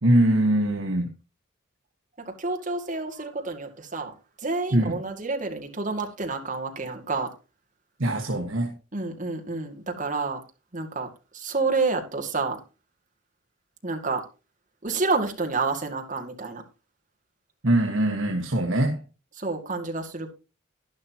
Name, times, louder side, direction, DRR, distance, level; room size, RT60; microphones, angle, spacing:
voice 1, 0.0-1.1 4.7-5.0 8.0-8.7 17.6-19.0, right 1 dB, 70° right, 1.5 m, -22 dB
voice 2, 2.2-7.3 8.9-10.4 10.7-12.6 13.8-14.2 14.8-16.6 19.4-20.3, right 3 dB, 35° right, 2.2 m, -29 dB
11.5 x 11.5 x 2.9 m
head